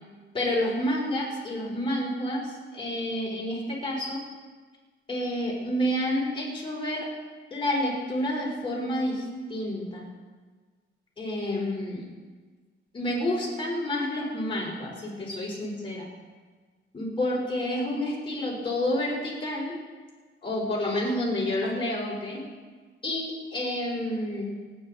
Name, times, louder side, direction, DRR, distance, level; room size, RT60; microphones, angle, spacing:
voice 1, 0.3-4.2 5.1-7.1 7.5-10.1 11.2-12.1 12.9-16.1 16.9-19.7 20.4-22.4 23.0-24.5, left 1 dB, 25° left, -5 dB, 4.3 m, -29 dB
26.5 x 8.9 x 4.2 m, 1.4 s
wide cardioid pair, 175°, 21 cm